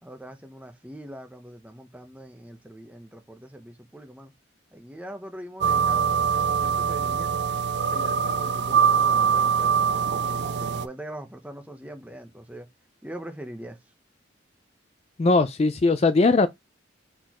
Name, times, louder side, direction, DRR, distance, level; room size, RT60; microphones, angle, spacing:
voice 1, 0.0-4.3 4.7-7.3 7.9-12.7 13.0-13.8, right 1 dB, 5° right, 0.8 m, -42 dB
sound 1, 5.6-10.9, right 7 dB, 60° right, 0.4 m, -23 dB
voice 2, 15.2-16.5, left 3 dB, 30° left, 0.3 m, -19 dB
4.3 x 4.0 x 2.9 m
head